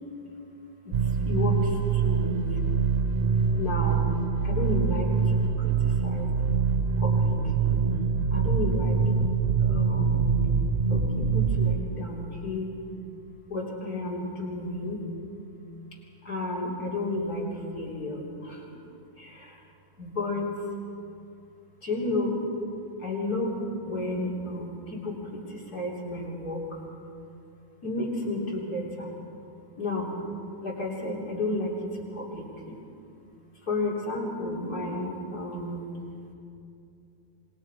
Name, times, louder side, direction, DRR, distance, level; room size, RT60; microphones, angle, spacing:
sound 1, 0.9-11.8, right 5 dB, 75° right, 0.5 m, -24 dB
voice 1, 1.2-2.6 3.5-4.1 4.4-6.3 7.0-7.8 8.3-9.0 9.6-10.4 10.9-12.7 13.5-15.0 16.2-18.6 19.2-19.6 20.0-20.5 21.8-22.4 23.0-26.8 27.8-29.1 29.8-30.1 30.6-31.8 32.1-32.7 33.6-35.8, left 2 dB, 50° left, -4 dB, 4.0 m, -32 dB
26.5 x 20.5 x 4.9 m, 2.6 s
omnidirectional pair, 2.2 m